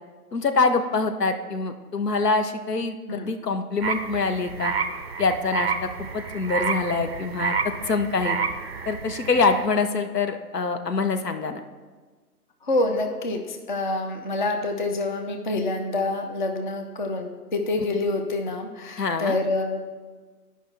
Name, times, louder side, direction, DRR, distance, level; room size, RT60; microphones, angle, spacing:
voice 1, 0.3-4.7 5.2-5.9 6.1-8.4 8.9-11.6 19.0-19.4, left 4 dB, 80° left, 8 dB, 0.8 m, -25 dB
sound 1, 3.8-9.6, right 5 dB, 45° right, 0.4 m, -29 dB
voice 2, 12.6-19.8, left 2 dB, 35° left, 4 dB, 0.5 m, -27 dB
11.0 x 5.3 x 3.2 m, 1.4 s
figure-of-eight pair, 135°, 47 cm